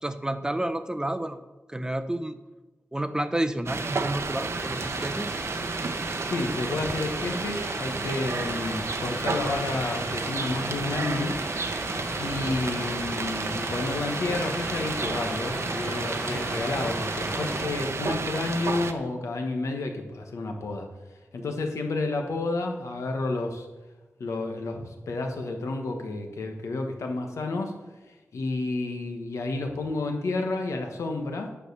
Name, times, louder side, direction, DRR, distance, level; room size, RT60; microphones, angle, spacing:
voice 1, 0.0-1.4 1.7-2.4 2.9-5.4 16.0-16.5, right 1 dB, 15° right, 10 dB, 0.6 m, -30 dB
sound 1, 3.7-18.9, right 3 dB, 65° right, 0.8 m, -31 dB
sound 2, 4.6-17.7, equal, 10° left, 1.6 m, -38 dB
voice 2, 6.3-11.4 12.2-20.9 21.3-23.7 24.2-27.7 28.3-31.5, left 2 dB, 90° left, 3 dB, 1.2 m, -30 dB
9.1 x 4.9 x 6.7 m, 1.1 s
wide cardioid pair, 70°, 5 cm